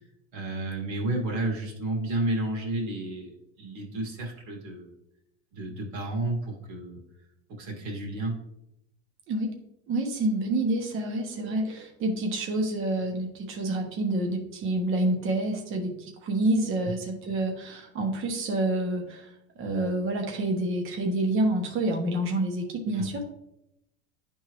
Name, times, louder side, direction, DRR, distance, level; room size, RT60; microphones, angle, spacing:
voice 1, 0.3-4.9 5.5-7.0 7.5-8.4 22.9-23.1, right 2 dB, 60° right, -2 dB, 2.2 m, -31 dB
voice 2, 9.9-19.2 19.6-23.2, right 1 dB, 40° right, 2 dB, 1.2 m, -28 dB
10.5 x 3.7 x 3.1 m, 0.83 s
supercardioid pair, 130°, 32 cm